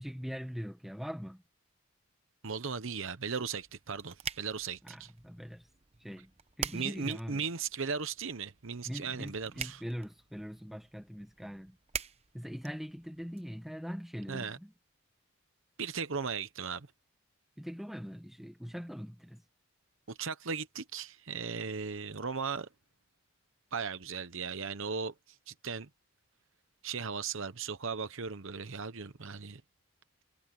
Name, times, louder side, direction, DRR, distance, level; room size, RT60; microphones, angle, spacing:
voice 1, 0.0-1.4 4.8-5.7 6.0-6.3 6.6-7.4 8.8-11.8 12.3-14.7 17.6-19.4, equal, ahead, 1.1 m, -42 dB
voice 2, 2.4-5.1 6.7-9.8 14.3-14.6 15.8-16.9 20.1-22.7 23.7-25.9 26.8-29.6, right 5 dB, 60° right, 0.9 m, -37 dB
sound 1, 3.5-13.4, right 7 dB, 30° right, 0.8 m, -46 dB
head